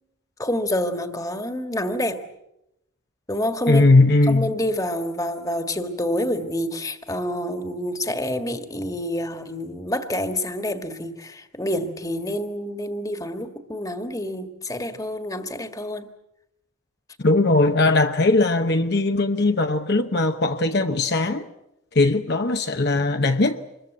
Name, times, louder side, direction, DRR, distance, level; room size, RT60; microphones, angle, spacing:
voice 1, 0.4-2.2 3.3-3.9 4.3-16.1, left 1 dB, 15° left, 1.7 m, -27 dB
voice 2, 3.7-4.5 17.2-21.5 21.9-23.6, left 2 dB, 50° left, 0.9 m, -19 dB
26.5 x 22.0 x 8.0 m
head